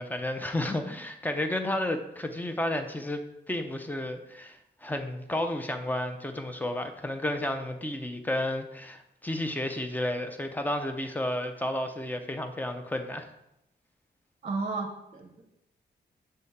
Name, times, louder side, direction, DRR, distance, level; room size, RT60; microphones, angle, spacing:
voice 1, 0.0-13.3, left 1 dB, 10° left, 6 dB, 0.5 m, -32 dB
voice 2, 14.4-15.4, right 3 dB, 35° right, 3 dB, 0.7 m, -33 dB
6.6 x 3.6 x 4.1 m, 0.83 s
wide cardioid pair, 170°, 18 cm